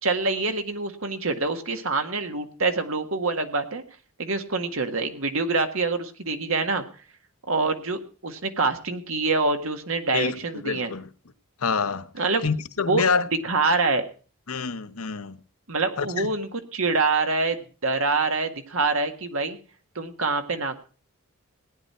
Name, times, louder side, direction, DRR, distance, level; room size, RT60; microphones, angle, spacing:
voice 1, 0.0-3.8 4.2-6.8 7.5-10.9 12.2-12.4 12.8-13.0 13.4-14.1 15.7-19.6 19.9-20.8, right 3 dB, 70° right, 1.8 m, -25 dB
voice 2, 10.1-11.1 11.6-12.1 12.4-13.2 14.5-15.4 16.0-16.3, left 5 dB, 85° left, 1.0 m, -27 dB
17.5 x 10.0 x 4.4 m
head